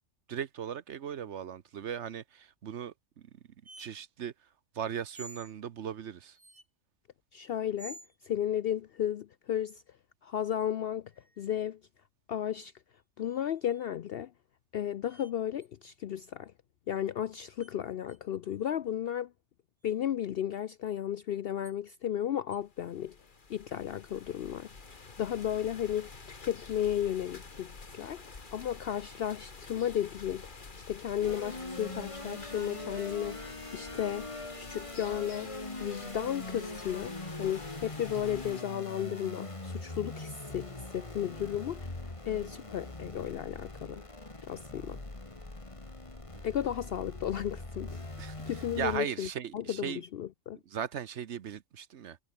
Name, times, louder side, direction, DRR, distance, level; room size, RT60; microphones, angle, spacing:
voice 1, 0.3-3.3 3.8-4.5 4.7-6.4 46.3-46.4 48.2-50.0 50.7-52.2, right 8 dB, 70° right, 1.1 m, -38 dB
sound 1, 3.6-3.9 5.1-5.5 6.3-6.7 7.8-8.2 11.1-11.6 13.2-13.9 15.1-15.3 15.6-15.7 17.6-17.7 18.1-18.2 19.8-20.0 21.6-21.8 22.5-22.6, right 2 dB, 90° right, 7.4 m, -50 dB
voice 2, 7.3-8.0 8.2-9.8 10.2-11.1 11.4-11.8 12.3-12.7 13.2-14.3 14.7-16.5 16.9-19.3 19.8-23.2 23.5-24.7 24.9-35.5 35.8-42.0 42.2-44.1 44.4-45.0 46.4-48.0 48.5-49.3 49.5-50.6, left 10 dB, 60° left, 0.7 m, -34 dB
sound 2, 22.6-38.6, left 4 dB, 40° left, 1.9 m, -49 dB
sound 3, 31.2-49.0, left 2 dB, 25° left, 2.3 m, -42 dB
omnidirectional pair, 1.2 m